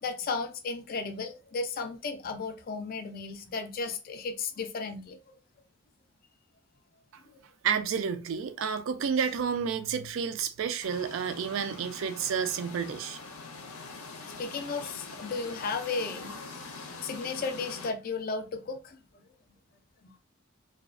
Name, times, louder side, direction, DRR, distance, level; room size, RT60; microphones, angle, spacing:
voice 1, 0.0-5.4 14.2-16.3 17.0-19.0 20.0-20.1, left 4 dB, 45° left, 0.4 m, -34 dB
voice 2, 7.6-13.2, right 7 dB, 65° right, 0.3 m, -30 dB
sound 1, 10.8-17.9, left 3 dB, 90° left, 0.6 m, -44 dB
2.4 x 2.2 x 2.4 m
head